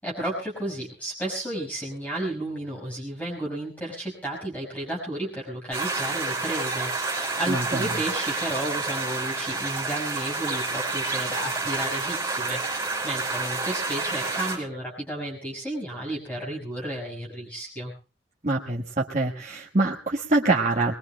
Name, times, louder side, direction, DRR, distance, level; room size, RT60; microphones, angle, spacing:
voice 1, 0.0-17.9, right 1 dB, 10° left, -3 dB, 5.5 m, -33 dB
sound 1, 5.7-14.6, right 3 dB, 15° right, 5.9 m, -29 dB
voice 2, 7.5-7.9 18.4-20.9, right 2 dB, 40° right, -2 dB, 1.4 m, -24 dB
22.0 x 21.5 x 2.3 m, 0.33 s
head